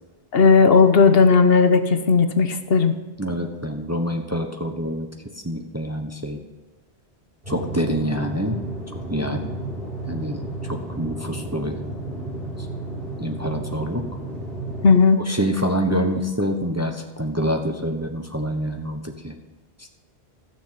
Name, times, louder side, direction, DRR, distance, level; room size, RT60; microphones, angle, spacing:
voice 1, 0.3-2.9 14.8-15.2, left 5 dB, 65° left, 8 dB, 1.2 m, -15 dB
voice 2, 3.2-5.1 5.4-6.4 7.5-8.6 9.1-9.4 10.0-11.8 12.6-12.7 13.2-14.0 15.2-19.4 19.8-19.9, equal, 15° right, 3 dB, 0.9 m, -26 dB
sound 1, 7.4-14.9, right 2 dB, 55° right, 5.2 m, -32 dB
15.0 x 7.1 x 5.7 m, 1.2 s
omnidirectional pair, 1.1 m